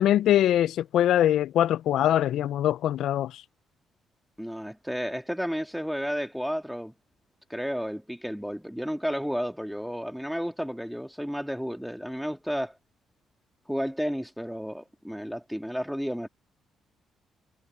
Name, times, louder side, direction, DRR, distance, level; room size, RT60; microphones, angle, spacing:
voice 1, 0.0-3.4, left 12 dB, 80° left, 0.4 m, -23 dB
voice 2, 4.4-6.9 7.5-12.8 13.7-16.3, equal, ahead, 1.9 m, -32 dB
cardioid pair, 90°, 0 cm